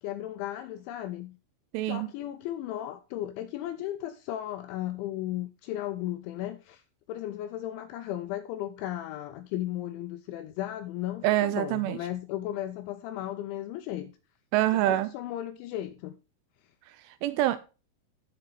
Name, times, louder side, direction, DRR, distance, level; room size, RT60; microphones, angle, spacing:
voice 1, 0.0-1.4 1.9-6.8 7.1-14.1 14.7-16.2, left 13 dB, 85° left, 2.7 m, -35 dB
voice 2, 1.7-2.1 11.2-12.0 14.5-15.1 16.9-17.6, right 15 dB, 85° right, 2.8 m, -26 dB
10.5 x 7.8 x 4.0 m
omnidirectional pair, 5.9 m